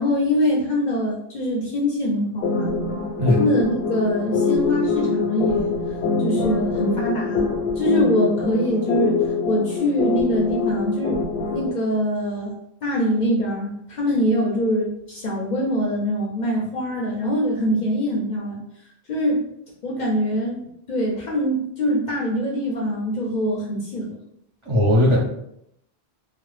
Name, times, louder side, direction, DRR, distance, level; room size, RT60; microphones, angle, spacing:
voice 1, 0.0-2.8 3.4-5.7 6.2-7.5 7.8-11.2 11.5-12.5 12.8-18.6 19.1-19.4 19.8-24.2, equal, 55° left, -4 dB, 0.6 m, -23 dB
sound 1, 2.4-11.7, left 4 dB, 85° left, 0.9 m, -24 dB
voice 2, 24.6-25.2, left 1 dB, 35° right, -6 dB, 0.6 m, -17 dB
2.0 x 2.0 x 3.0 m, 0.76 s
omnidirectional pair, 1.1 m